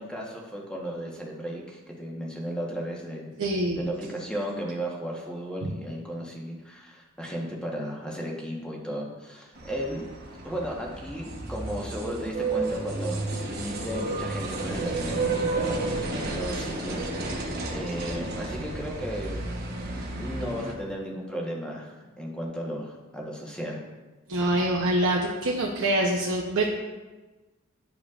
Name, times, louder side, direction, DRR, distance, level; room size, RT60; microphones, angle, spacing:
voice 1, 0.0-3.3 3.7-10.0 10.4-19.4 19.8-23.8, equal, 5° left, -2 dB, 1.0 m, -35 dB
voice 2, 3.4-3.8 24.3-26.6, right 1 dB, 85° right, -2 dB, 0.7 m, -25 dB
sound 1, 9.6-20.7, right 2 dB, 50° right, 1.0 m, -32 dB
10.0 x 5.1 x 2.4 m, 1.2 s
head